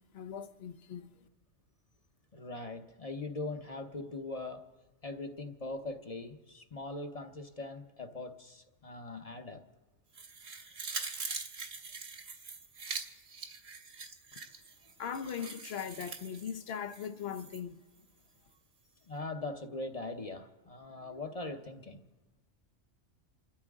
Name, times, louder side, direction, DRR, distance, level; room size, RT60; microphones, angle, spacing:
voice 1, 0.1-1.3 15.0-17.8, left 7 dB, 60° left, 0.9 m, -40 dB
voice 2, 2.3-4.6 5.0-9.6 19.1-22.0, left 2 dB, 35° left, 0.9 m, -41 dB
sound 1, 10.1-17.6 18.0-18.1, right 4 dB, 65° right, 1.4 m, -43 dB
29.0 x 13.0 x 3.6 m
omnidirectional pair, 1.2 m